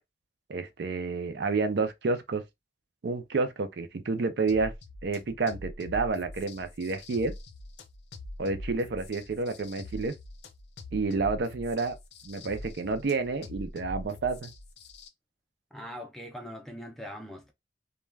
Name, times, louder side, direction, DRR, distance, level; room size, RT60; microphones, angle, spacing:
voice 1, 0.5-2.4 3.0-4.7 5.0-7.3 8.4-10.1 10.9-12.0 12.2-14.5, right 3 dB, 65° right, 0.4 m, -29 dB
sound 1, 4.5-15.1, left 1 dB, 65° left, 0.5 m, -43 dB
voice 2, 15.7-17.5, equal, ahead, 0.4 m, -41 dB
2.3 x 2.2 x 3.1 m
head